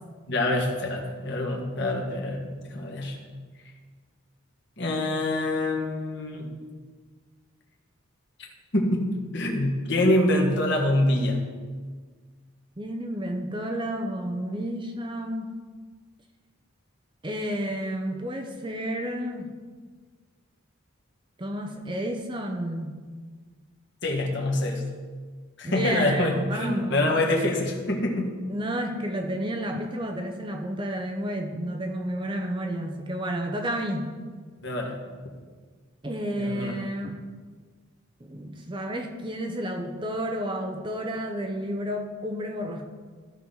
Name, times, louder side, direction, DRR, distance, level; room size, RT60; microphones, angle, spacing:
voice 1, 0.3-3.2 4.8-6.5 8.7-11.4 24.0-24.8 25.6-28.4 34.6-35.0 36.4-36.7, left 1 dB, 55° left, 0 dB, 1.6 m, -25 dB
voice 2, 12.8-15.5 17.2-19.5 21.4-22.9 25.6-27.3 28.5-34.1 36.0-37.2 38.3-42.9, equal, 20° right, 4 dB, 0.7 m, -31 dB
14.5 x 5.9 x 3.9 m, 1.5 s
head